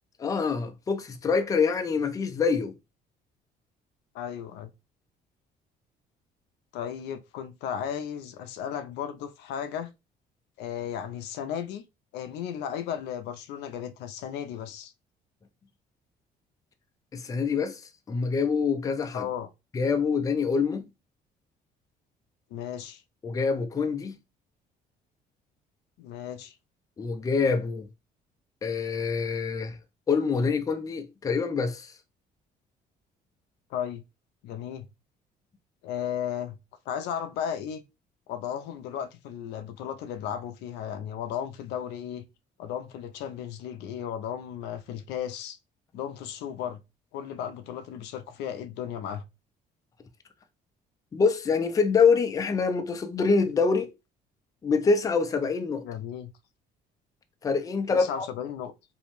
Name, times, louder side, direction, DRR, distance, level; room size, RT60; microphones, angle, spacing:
voice 1, 0.2-2.7 17.1-17.8 18.1-19.3 19.7-20.8 23.2-24.2 27.0-27.9 28.6-29.8 30.1-31.9 51.1-53.9 54.6-55.8 57.4-58.3, left 5 dB, 20° left, 0.4 m, -25 dB
voice 2, 4.1-4.7 6.7-9.9 10.6-11.8 12.1-14.9 19.1-19.5 22.5-23.0 26.0-26.6 33.7-34.0 34.4-34.8 35.8-36.6 36.9-37.8 38.3-42.3 42.6-45.6 45.9-46.8 47.1-49.2 55.8-56.3 57.9-58.7, left 9 dB, 85° left, 0.4 m, -35 dB
2.6 x 2.0 x 3.0 m
cardioid pair, 110°, 17 cm